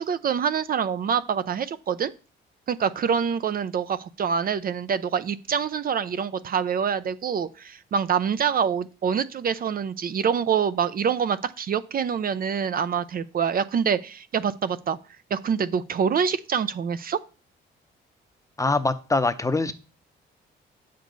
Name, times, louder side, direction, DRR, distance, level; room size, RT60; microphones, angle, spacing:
voice 1, 0.0-2.1 2.7-15.0 15.3-17.2, right 7 dB, 50° right, 14 dB, 0.5 m, -26 dB
voice 2, 18.6-19.7, left 3 dB, 15° left, 12 dB, 0.7 m, -23 dB
8.1 x 6.6 x 4.0 m, 0.35 s
cardioid pair, 90°, 20 cm